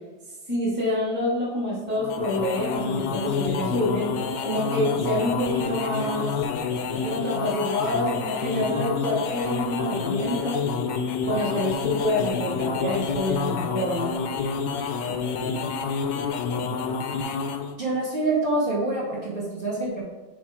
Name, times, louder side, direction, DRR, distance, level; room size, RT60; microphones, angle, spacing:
voice 1, 0.5-4.1 4.4-6.3 7.0-10.6 11.2-14.1, left 1 dB, 5° right, -6 dB, 1.4 m, -27 dB
sound 1, 1.9-17.8, left 5 dB, 80° left, 1.3 m, -28 dB
voice 2, 17.8-20.0, right 2 dB, 30° right, -6 dB, 1.8 m, -26 dB
6.2 x 4.1 x 4.7 m, 1.3 s
omnidirectional pair, 2.0 m